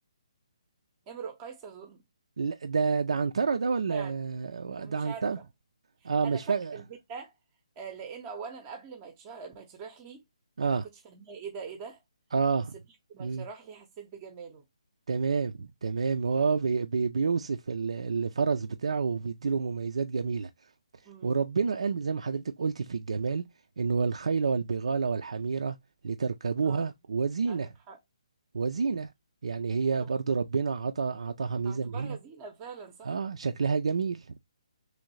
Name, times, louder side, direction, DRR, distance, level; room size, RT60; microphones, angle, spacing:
voice 1, 1.1-2.0 3.9-4.1 4.8-5.3 6.0-7.3 7.8-10.2 10.6-12.0 13.1-14.6 21.0-21.4 26.6-26.9 27.5-28.0 28.7-28.9 30.0-30.1 31.6-33.2, right 6 dB, 25° right, 0.6 m, -43 dB
voice 2, 2.4-5.4 6.0-6.8 10.6-10.9 12.3-12.7 13.2-13.5 15.1-20.5 21.2-23.4 23.8-25.8 26.0-27.7 28.5-29.1 29.4-32.2 33.0-34.4, right 5 dB, 70° right, 0.3 m, -29 dB
3.1 x 2.5 x 3.1 m
hypercardioid pair, 150°, 3 cm